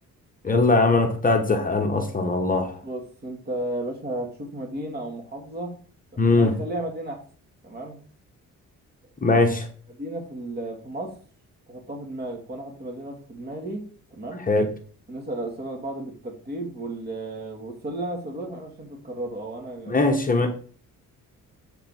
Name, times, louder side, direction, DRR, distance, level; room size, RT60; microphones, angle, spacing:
voice 1, 0.4-2.8 6.2-6.5 9.2-9.7 14.5-14.7 19.9-20.5, left 3 dB, 25° left, 4 dB, 1.2 m, -20 dB
voice 2, 2.8-5.7 6.1-7.2 7.6-8.0 9.3-9.6 9.9-11.1 11.7-13.8 14.1-14.4 15.1-20.5, right 1 dB, 30° right, 2 dB, 1.9 m, -34 dB
7.8 x 5.1 x 4.5 m, 0.42 s
cardioid pair, 115°, 32 cm